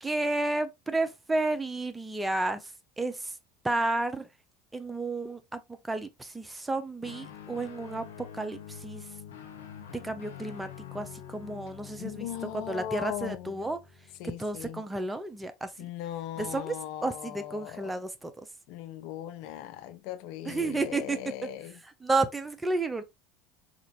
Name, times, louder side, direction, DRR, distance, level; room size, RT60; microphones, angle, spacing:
voice 1, 0.0-2.6 3.0-3.3 3.6-4.3 4.7-5.6 5.9-8.0 8.3-9.0 10.0-12.3 12.7-13.8 14.4-15.7 16.4-16.8 17.0-18.3 20.5-21.2 22.0-23.0, right 2 dB, 10° right, 0.6 m, -31 dB
Guitar, 7.0-14.7, left 9 dB, 85° left, 0.9 m, -46 dB
voice 2, 12.0-13.6 14.2-14.8 15.8-17.9 18.7-21.8, left 12 dB, 65° left, 0.6 m, -38 dB
4.3 x 2.5 x 3.0 m
hypercardioid pair, 80°, 0 cm